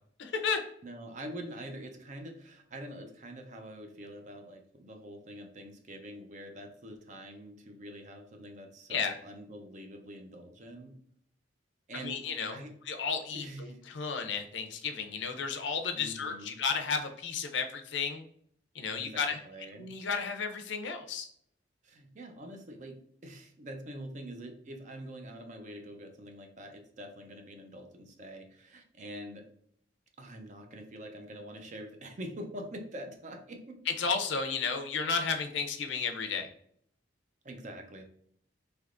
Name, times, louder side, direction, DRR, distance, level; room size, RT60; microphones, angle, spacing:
voice 1, 0.2-0.6 8.9-9.1 11.9-12.6 12.9-18.2 18.7-19.4 19.8-21.3 34.0-36.5, left 5 dB, 70° left, 6 dB, 0.5 m, -33 dB
voice 2, 0.8-11.0 11.9-12.2 12.5-12.7 13.3-13.8 15.9-16.6 18.9-19.9 21.8-29.4 30.2-33.8 37.4-38.0, right 1 dB, 40° right, 4 dB, 0.5 m, -45 dB
3.4 x 2.9 x 2.4 m, 0.65 s
head